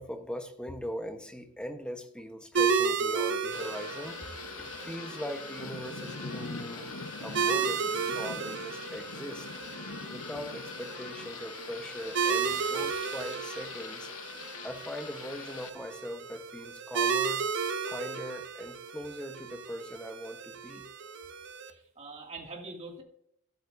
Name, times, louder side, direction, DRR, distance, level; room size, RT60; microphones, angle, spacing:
voice 1, 0.0-9.5 10.1-14.1 14.6-17.5 17.9-20.9, equal, 5° left, 1.0 m, -41 dB
sound 1, 2.5-21.7, right 6 dB, 55° right, 0.8 m, -34 dB
Thunder / Rain, 3.5-15.7, left 5 dB, 70° left, 0.9 m, -43 dB
voice 2, 21.7-23.0, right 3 dB, 30° right, 2.2 m, -44 dB
13.0 x 12.5 x 2.6 m
head